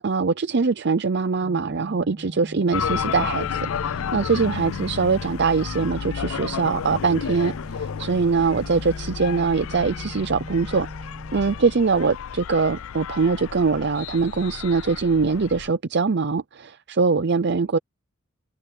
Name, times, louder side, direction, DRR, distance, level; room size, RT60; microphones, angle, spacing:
voice 1, 0.0-10.9 11.3-17.8, right 4 dB, 55° right, 0.6 m, -22 dB
Organ, 1.4-12.3, equal, 20° right, 7.6 m, -41 dB
sound 1, 2.7-15.7, left 7 dB, 85° left, 0.4 m, -32 dB
head